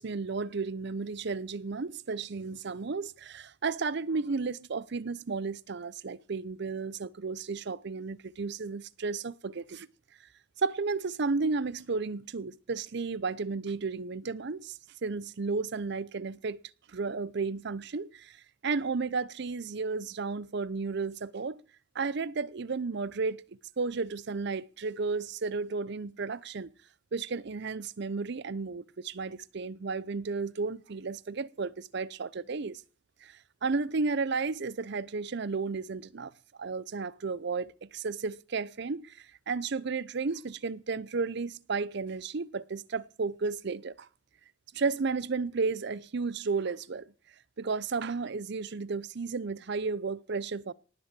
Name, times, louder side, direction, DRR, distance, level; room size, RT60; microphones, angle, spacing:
voice 1, 0.0-9.9 10.6-16.6 16.9-18.4 18.6-21.6 21.9-23.4 23.8-26.7 27.1-32.8 33.2-33.3 33.6-36.3 36.6-44.1 44.7-47.1 47.6-50.7, right 4 dB, 60° right, 0.6 m, -33 dB
19.0 x 7.3 x 7.6 m
head